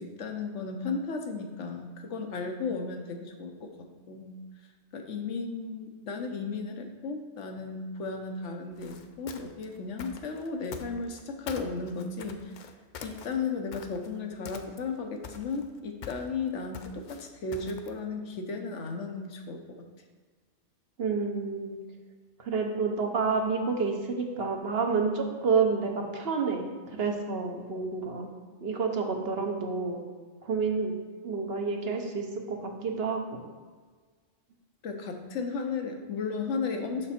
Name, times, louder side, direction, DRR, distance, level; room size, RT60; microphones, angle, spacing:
voice 1, 0.0-3.7 4.1-4.4 4.9-12.5 13.0-19.6 34.8-37.1, left 4 dB, 80° left, 4 dB, 1.1 m, -35 dB
sound 1, 8.7-11.2 11.5-14.2 14.4-15.0 15.2-18.0, left 5 dB, 55° left, 0.5 m, -44 dB
voice 2, 21.0-21.8 22.4-28.3 28.6-30.0 30.4-30.9 31.2-33.4, right 4 dB, 60° right, 2 dB, 1.1 m, -29 dB
6.5 x 6.1 x 4.3 m, 1.5 s
omnidirectional pair, 1.2 m